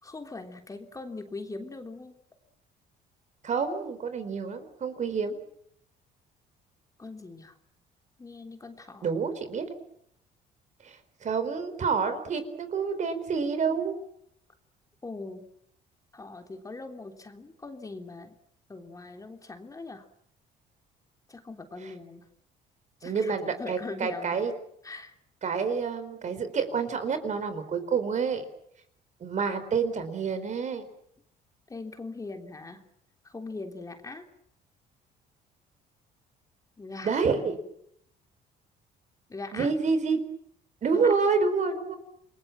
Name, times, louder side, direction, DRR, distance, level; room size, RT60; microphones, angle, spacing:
voice 1, 0.0-2.2 7.0-7.6 8.2-9.1 15.0-15.5 16.1-18.4 18.7-20.1 21.3-22.3 23.0-24.4 24.8-25.2 31.7-32.9 33.2-34.3 36.8-37.2 39.3-39.7 40.9-41.1, left 3 dB, 20° left, 5 dB, 3.3 m, -41 dB
voice 2, 3.4-5.4 9.0-9.7 10.8-13.9 23.0-24.5 25.4-28.4 29.2-30.8 37.0-37.6 39.5-40.2 40.8-42.0, right 5 dB, 45° right, 10 dB, 4.5 m, -28 dB
29.0 x 22.0 x 7.5 m, 0.71 s
cardioid pair, 110°, 17 cm